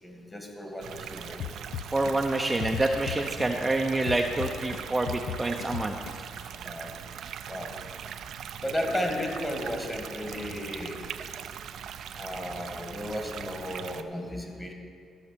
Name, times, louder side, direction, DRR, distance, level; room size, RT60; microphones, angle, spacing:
voice 1, 0.0-1.4 3.2-3.3 6.6-7.0 7.5-7.9 8.6-11.1 12.1-14.7, left 1 dB, 15° left, 2 dB, 2.1 m, -34 dB
sound 1, 0.8-14.0, right 8 dB, 70° right, 0.5 m, -40 dB
sound 2, 1.4-3.7 4.1-6.4, left 10 dB, 80° left, 0.5 m, -36 dB
voice 2, 1.9-6.3, right 2 dB, 15° right, 2 dB, 0.6 m, -27 dB
14.0 x 6.4 x 6.7 m, 2.3 s
cardioid pair, 90°, 0 cm